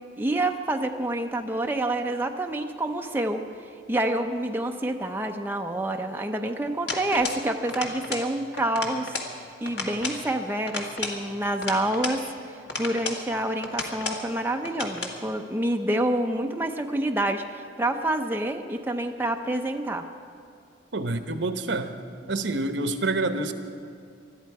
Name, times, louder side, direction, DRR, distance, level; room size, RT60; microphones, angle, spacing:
voice 1, 0.2-3.4 3.9-9.1 9.6-20.1, right 1 dB, 10° right, 3 dB, 0.6 m, -27 dB
sound 1, 6.9-7.4 7.7-8.3 8.6-9.3 9.6-10.2 10.7-12.2 12.7-13.2 13.6-14.2 14.6-15.2, left 3 dB, 65° left, 1.7 m, -33 dB
voice 2, 20.9-21.9 22.3-23.5, right 2 dB, 75° right, 8 dB, 1.0 m, -27 dB
20.5 x 13.0 x 4.8 m, 2.5 s
head